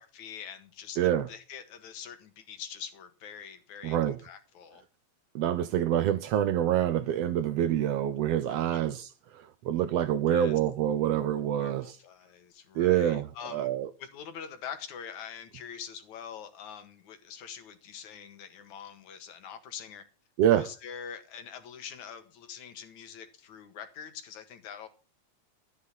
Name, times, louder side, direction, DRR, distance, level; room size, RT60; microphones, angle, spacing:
voice 1, 0.0-1.0 1.3-4.9 10.3-10.6 11.5-13.7 14.0-20.0 20.5-24.9, left 7 dB, 80° left, 3.1 m, -44 dB
voice 2, 1.0-1.3 3.8-4.2 5.3-11.9 12.7-13.9 20.4-20.7, right 11 dB, 70° right, 1.6 m, -26 dB
13.5 x 9.6 x 5.8 m
omnidirectional pair, 3.3 m